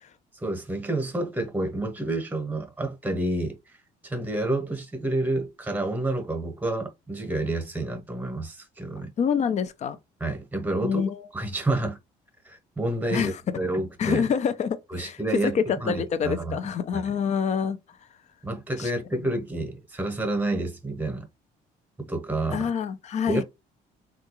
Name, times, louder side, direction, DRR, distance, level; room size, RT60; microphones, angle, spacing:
voice 1, 0.3-3.8 4.0-9.1 10.2-11.0 11.3-12.0 12.4-14.2 14.9-16.7 18.4-21.3 22.0-22.7 23.3-23.4, right 2 dB, 10° right, 1.0 m, -29 dB
voice 2, 9.2-10.0 10.8-11.2 13.1-13.6 14.0-15.2 15.4-17.8 18.8-19.2 22.5-23.4, left 7 dB, 45° left, 0.5 m, -27 dB
3.4 x 2.4 x 2.9 m
cardioid pair, 110°, 17 cm